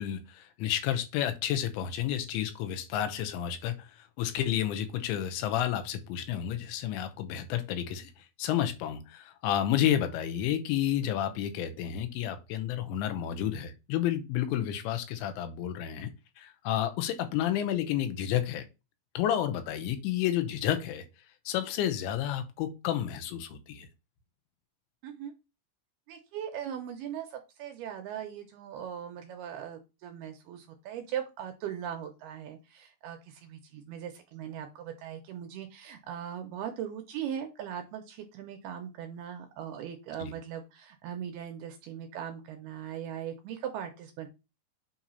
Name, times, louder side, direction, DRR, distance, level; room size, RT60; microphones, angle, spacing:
voice 1, 0.0-16.1 16.4-18.7 19.1-21.1 21.5-23.9 40.2-40.3, left 11 dB, 85° left, 3.2 m, -31 dB
voice 2, 26.1-44.3, right 9 dB, 75° right, 2.4 m, -39 dB
8.6 x 2.9 x 5.4 m
omnidirectional pair, 5.2 m